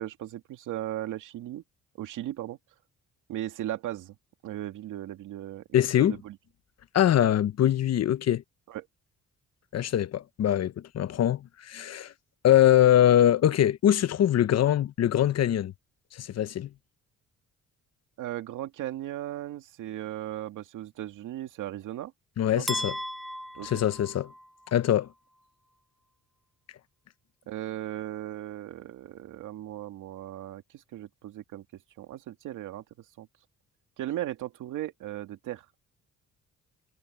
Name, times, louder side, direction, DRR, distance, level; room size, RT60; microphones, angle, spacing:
voice 1, 0.0-1.6 2.0-2.6 3.3-4.1 4.4-5.7 6.0-6.4 8.7-8.9 18.2-22.1 22.6-22.7 23.6-23.7 27.5-31.6 32.0-32.8 33.2-33.3 34.0-35.7, right 13 dB, 85° right, 2.4 m, -37 dB
voice 2, 5.7-6.2 6.9-8.4 9.7-12.1 12.4-15.7 16.1-16.7 22.4-22.9 23.6-24.3 24.7-25.1, left 11 dB, 55° left, 0.9 m, -23 dB
sound 1, 22.7-24.8, equal, ahead, 1.2 m, -36 dB
cardioid pair, 90°, 30 cm